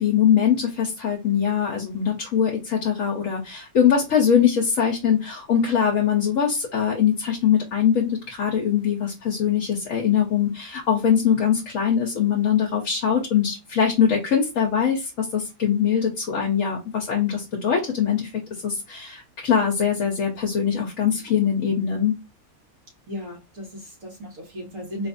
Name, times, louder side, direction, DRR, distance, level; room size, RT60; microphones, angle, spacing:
voice 1, 0.0-18.3 18.6-22.1, left 8 dB, 70° left, 1.2 m, -22 dB
voice 2, 23.1-25.1, equal, 70° right, 2.0 m, -35 dB
4.2 x 2.5 x 2.5 m
omnidirectional pair, 1.5 m